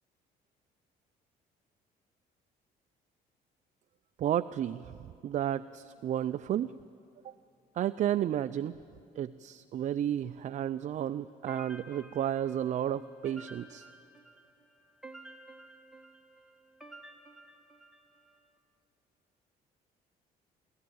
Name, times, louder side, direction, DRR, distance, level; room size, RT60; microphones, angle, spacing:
voice 1, 4.2-6.7 7.2-7.3 7.7-8.8 9.2-13.9, right 10 dB, 45° right, 11 dB, 0.4 m, -32 dB
sound 1, 11.5-18.4, right 2 dB, ahead, 1.7 m, -52 dB
26.0 x 14.0 x 9.4 m, 2.6 s
cardioid pair, 110°, 17 cm